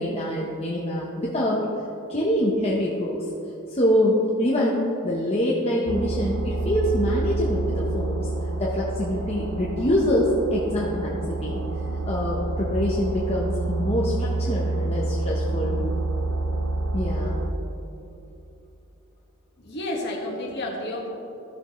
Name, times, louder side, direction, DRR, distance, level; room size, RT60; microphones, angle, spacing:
voice 1, 0.0-1.6 2.1-3.2 3.7-8.3 8.6-11.6 12.1-15.8 16.9-17.4, equal, 30° left, -5 dB, 0.9 m, -25 dB
sound 1, 5.9-17.5, right 2 dB, 65° right, 0.7 m, -28 dB
voice 2, 19.6-21.1, left 1 dB, 50° left, -2 dB, 1.7 m, -31 dB
15.0 x 6.5 x 3.1 m, 2.9 s
head